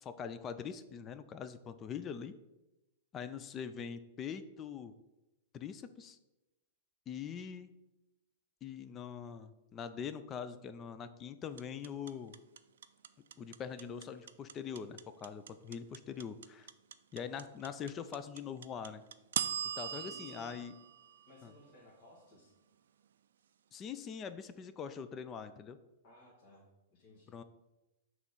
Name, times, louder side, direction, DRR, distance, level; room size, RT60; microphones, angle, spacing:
voice 1, 0.0-2.3 3.1-4.9 5.5-6.2 7.1-7.7 8.6-12.4 13.4-16.7 17.1-19.0 19.8-20.7 21.4-21.5 23.7-25.8 27.3-27.4, left 7 dB, 30° left, 11 dB, 0.4 m, -43 dB
sound 1, 11.6-21.7, right 9 dB, 75° right, 0.3 m, -40 dB
voice 2, 19.9-20.6 21.3-22.5 26.0-27.4, left 1 dB, 50° left, -4 dB, 1.5 m, -58 dB
6.0 x 3.2 x 5.3 m, 0.99 s
hypercardioid pair, 115°, 0 cm